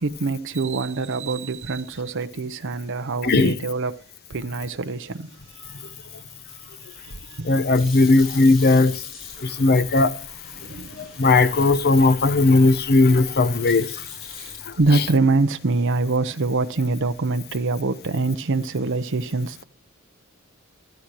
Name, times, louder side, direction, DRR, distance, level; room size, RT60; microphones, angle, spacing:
voice 1, 0.0-4.0 4.3-5.3 5.6-5.9 7.0-7.5 9.4-9.6 10.6-11.2 14.4-19.6, right 3 dB, 60° right, 0.8 m, -25 dB
voice 2, 3.2-3.5 7.4-9.0 9.4-10.1 11.0-14.1 14.6-15.0, left 3 dB, 50° left, 0.9 m, -18 dB
sound 1, 6.9-15.4, left 3 dB, 65° left, 7.8 m, -45 dB
16.0 x 13.0 x 3.0 m
head